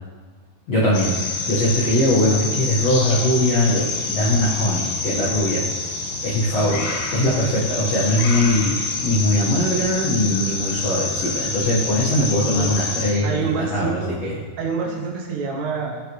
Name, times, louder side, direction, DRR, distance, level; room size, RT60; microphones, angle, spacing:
voice 1, 0.7-5.6 6.2-6.8 7.1-14.3, left 1 dB, 90° left, -8 dB, 1.4 m, -21 dB
sound 1, 0.9-13.1, left 3 dB, 70° left, 2.2 m, -27 dB
voice 2, 13.2-14.2 14.6-16.0, right 5 dB, 75° right, 0 dB, 2.7 m, -27 dB
14.0 x 5.0 x 3.1 m, 1.5 s
omnidirectional pair, 5.4 m